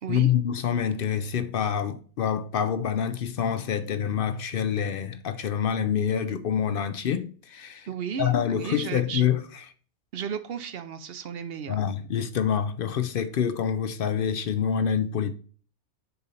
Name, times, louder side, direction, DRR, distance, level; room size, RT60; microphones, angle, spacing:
voice 1, 0.1-7.9 8.2-9.4 11.7-15.3, left 8 dB, 60° left, 0.6 m, -26 dB
voice 2, 7.8-9.3 10.1-11.8, right 7 dB, 60° right, 0.8 m, -34 dB
6.8 x 4.2 x 3.9 m
omnidirectional pair, 1.2 m